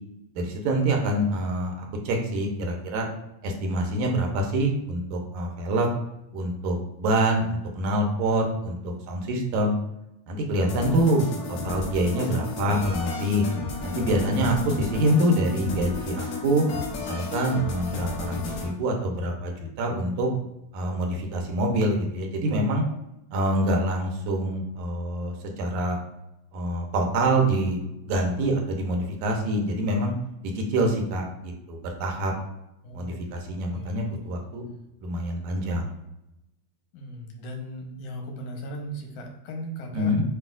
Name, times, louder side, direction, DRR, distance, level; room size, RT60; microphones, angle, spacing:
voice 1, 0.4-3.1 3.4-5.9 6.3-9.8 10.3-13.4 13.8-16.6 17.0-20.3 20.7-22.8 23.3-26.0 26.5-27.8 28.1-30.1 30.6-32.3 32.9-34.6 35.0-35.9 39.9-40.2, right 1 dB, 85° right, 2 dB, 2.1 m, -26 dB
sound 1, 10.7-18.7, left 4 dB, 70° left, 2.1 m, -33 dB
voice 2, 32.8-33.2 33.7-34.2 36.9-40.1, equal, 90° left, 1 dB, 2.3 m, -37 dB
8.0 x 2.7 x 2.4 m, 0.87 s
omnidirectional pair, 3.4 m